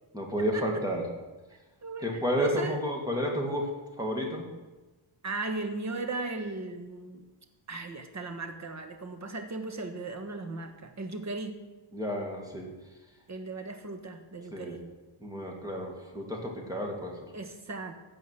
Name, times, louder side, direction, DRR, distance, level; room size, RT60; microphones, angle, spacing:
voice 1, 0.1-1.0 2.0-3.7 4.0-4.5 11.9-12.7 14.5-14.8 15.2-17.2, equal, 5° right, 0 dB, 2.4 m, -31 dB
voice 2, 2.3-2.8 5.2-7.2 7.7-11.6 13.3-14.9 17.3-17.9, right 3 dB, 35° right, 6 dB, 1.4 m, -37 dB
15.0 x 5.2 x 9.3 m, 1.2 s
wide cardioid pair, 150°, 50 cm